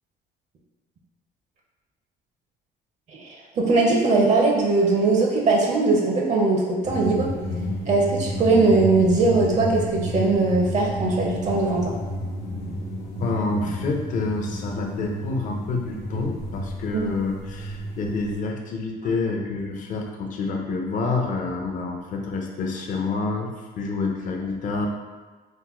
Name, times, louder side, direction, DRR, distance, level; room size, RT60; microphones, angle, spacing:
voice 1, 3.1-7.3 7.9-11.9 16.9-17.0, right 3 dB, 45° right, -1 dB, 0.5 m, -20 dB
sound 1, 6.8-18.4, equal, 85° left, 0.9 m, -31 dB
voice 2, 13.2-24.9, left 3 dB, 50° left, 1 dB, 0.5 m, -28 dB
3.5 x 2.0 x 3.0 m, 1.3 s
cardioid pair, 110°, 17 cm